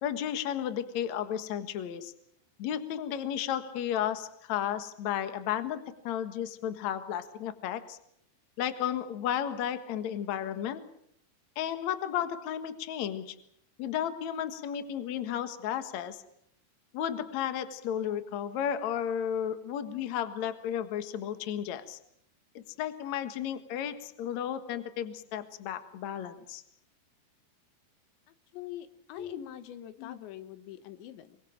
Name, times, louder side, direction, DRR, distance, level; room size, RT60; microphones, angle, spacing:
voice 1, 0.0-2.1 2.6-8.0 8.6-10.8 11.6-13.4 13.8-16.2 16.9-22.0 22.5-26.6 29.1-29.4 30.0-30.2, left 9 dB, 55° left, 10 dB, 2.2 m, -33 dB
voice 2, 28.3-31.4, left 12 dB, 90° left, 12 dB, 3.6 m, -44 dB
24.0 x 22.0 x 7.4 m, 0.71 s
omnidirectional pair, 5.0 m